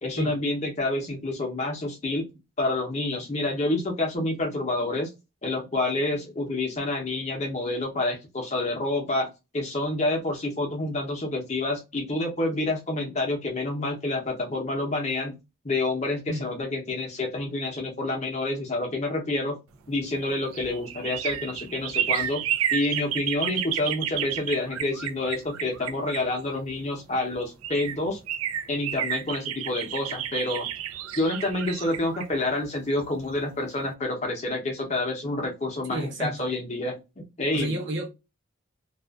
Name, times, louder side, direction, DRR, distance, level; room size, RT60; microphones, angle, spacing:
voice 1, 0.0-2.3 2.6-5.1 5.4-9.3 9.5-15.3 15.6-19.6 19.9-22.4 22.7-28.2 28.7-30.7 31.2-37.8, left 2 dB, 35° left, 0.7 m, -28 dB
sound 1, 20.0-26.8 27.3-27.4 27.6-33.4 33.7-33.8, right 10 dB, 85° right, 0.4 m, -31 dB
voice 2, 35.9-36.5 37.5-38.1, right 1 dB, 55° right, 0.7 m, -31 dB
2.4 x 2.3 x 2.3 m
head